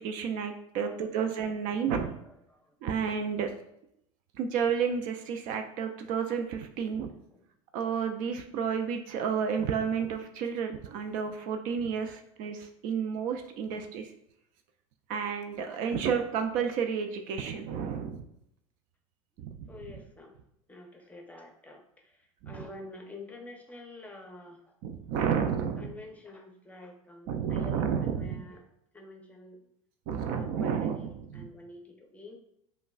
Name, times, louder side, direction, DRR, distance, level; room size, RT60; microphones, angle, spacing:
voice 1, 0.0-2.1 2.8-3.5 4.4-7.1 7.7-14.1 15.1-18.2 19.4-19.7 22.4-22.6 24.8-25.9 27.3-28.4 30.1-31.5, right 7 dB, 55° right, 7 dB, 0.4 m, -31 dB
voice 2, 0.7-1.4 1.8-1.9 2.3-2.8 7.3-7.5 12.0-12.2 13.7-13.8 15.7-16.3 19.7-20.4 20.7-24.8 25.8-28.7 28.9-29.6 30.1-32.4, left 2 dB, 10° left, 2 dB, 0.7 m, -49 dB
5.1 x 2.1 x 2.4 m, 0.78 s
hypercardioid pair, 85°, 17 cm